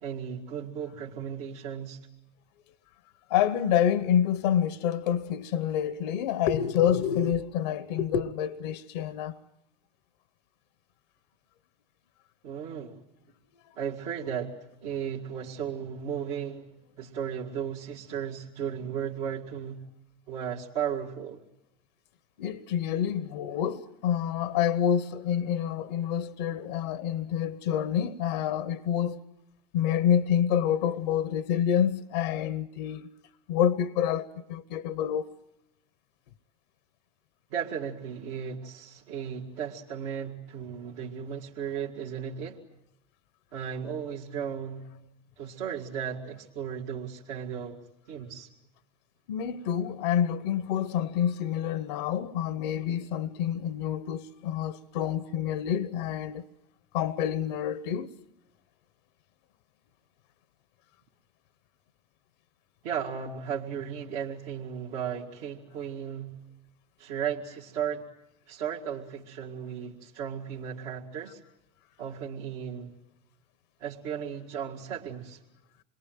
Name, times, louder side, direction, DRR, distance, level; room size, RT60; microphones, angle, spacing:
voice 1, 0.0-2.0 12.4-13.0 13.8-16.7 17.0-19.8 20.3-21.4 37.5-42.6 43.5-44.9 45.4-47.8 48.1-48.5 62.8-66.4 67.0-68.1 68.5-71.4 72.0-72.9 73.8-75.4, right 8 dB, 70° right, 2.5 m, -35 dB
voice 2, 3.3-9.4 22.4-29.2 29.7-33.1 33.5-35.3 49.3-56.4 56.9-58.1, left 9 dB, 85° left, 1.0 m, -27 dB
28.0 x 22.0 x 9.3 m
hypercardioid pair, 90°, 20 cm